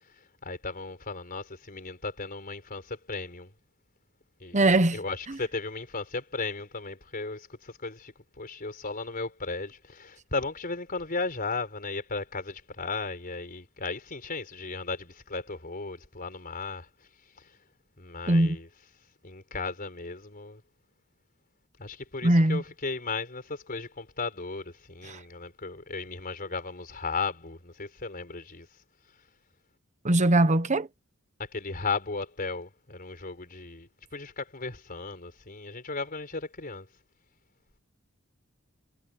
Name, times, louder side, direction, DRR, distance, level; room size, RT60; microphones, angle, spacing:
voice 1, 0.2-3.5 4.4-4.6 4.9-16.9 17.4-17.5 18.0-18.7 19.2-20.6 21.8-28.7 31.4-36.9, left 4 dB, 45° left, 4.7 m, -36 dB
voice 2, 4.5-5.0 18.3-18.6 22.2-22.6 25.1-25.2 30.0-30.9, right 1 dB, 35° right, 1.2 m, -21 dB
head